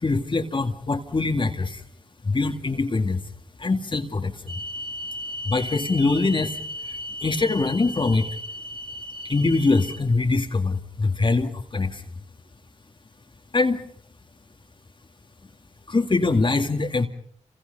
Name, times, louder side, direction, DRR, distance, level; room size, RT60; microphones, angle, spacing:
voice 1, 0.0-1.8 2.2-3.2 3.6-4.5 5.4-6.6 6.8-8.3 9.2-12.0 13.5-13.8 15.9-17.1, left 3 dB, 40° left, 5 dB, 2.3 m, -23 dB
sound 1, 4.5-10.0, equal, 45° right, 5.8 m, -35 dB
28.0 x 26.0 x 5.4 m, 0.65 s
cardioid pair, 60°, 13 cm